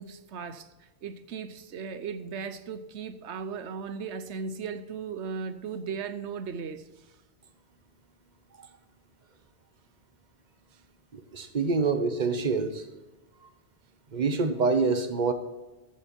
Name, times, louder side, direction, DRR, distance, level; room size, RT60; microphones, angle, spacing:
voice 1, 0.0-7.1 10.7-10.8, right 5 dB, 85° right, 1.0 m, -37 dB
voice 2, 11.1-12.8 14.1-15.3, right 4 dB, 45° right, 1.2 m, -26 dB
14.0 x 9.0 x 4.4 m
omnidirectional pair, 1.1 m